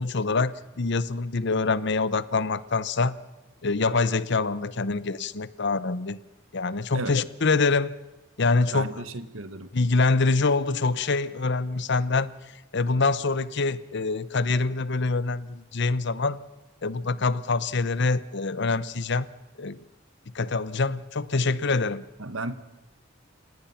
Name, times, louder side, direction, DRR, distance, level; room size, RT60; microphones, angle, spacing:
voice 1, 0.0-3.2 3.6-6.2 6.5-8.0 8.4-9.0 9.7-12.3 12.7-16.4 16.8-19.3 19.6-19.8 20.3-22.1, left 3 dB, 55° left, 17 dB, 0.8 m, -25 dB
voice 2, 8.7-9.7 21.4-21.5 22.2-22.6, right 2 dB, 70° right, 13 dB, 1.4 m, -34 dB
30.0 x 17.5 x 5.8 m, 1.1 s
head